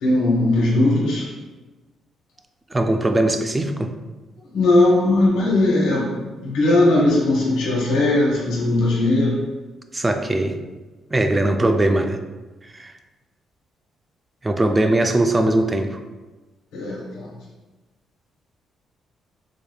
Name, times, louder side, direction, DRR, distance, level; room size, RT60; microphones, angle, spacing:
voice 1, 0.0-1.3 4.5-9.4 16.7-17.3, left 2 dB, 90° left, -6 dB, 1.2 m, -18 dB
voice 2, 2.7-3.9 9.9-10.6 11.1-12.2 12.7-12.9 14.4-16.0, right 1 dB, 20° right, 6 dB, 0.4 m, -20 dB
4.8 x 3.3 x 2.3 m, 1.2 s
cardioid pair, 90°, 0 cm